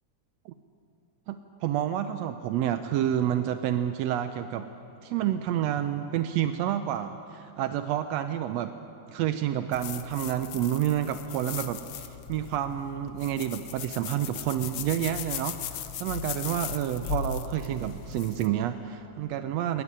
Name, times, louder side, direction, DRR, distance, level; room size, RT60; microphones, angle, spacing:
voice 1, 1.3-4.7 5.0-8.7 9.1-19.8, right 11 dB, 80° right, 9 dB, 1.5 m, -29 dB
sound 1, 9.7-18.5, left 8 dB, 70° left, 1.5 m, -38 dB
20.0 x 18.0 x 9.9 m, 2.8 s
omnidirectional pair, 3.8 m